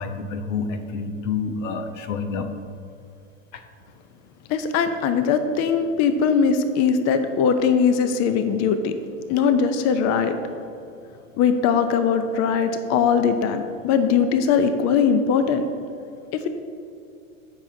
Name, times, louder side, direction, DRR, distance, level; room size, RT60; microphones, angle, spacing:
voice 1, 0.0-2.5 3.5-3.6, left 5 dB, 85° left, 7 dB, 0.9 m, -28 dB
voice 2, 4.5-8.9 9.3-10.4 11.4-15.6, left 6 dB, 45° left, 9 dB, 0.7 m, -20 dB
14.5 x 5.9 x 2.7 m, 2.6 s
supercardioid pair, 110°, 37 cm